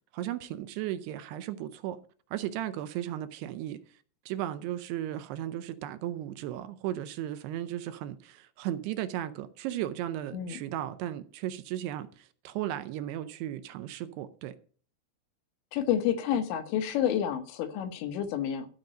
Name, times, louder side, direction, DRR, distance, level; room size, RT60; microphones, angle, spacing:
voice 1, 0.1-2.0 2.3-4.0 4.3-14.6, right 12 dB, 80° right, 2.6 m, -35 dB
voice 2, 15.7-18.7, left 9 dB, 90° left, 3.4 m, -29 dB
13.0 x 5.2 x 7.7 m
omnidirectional pair, 5.0 m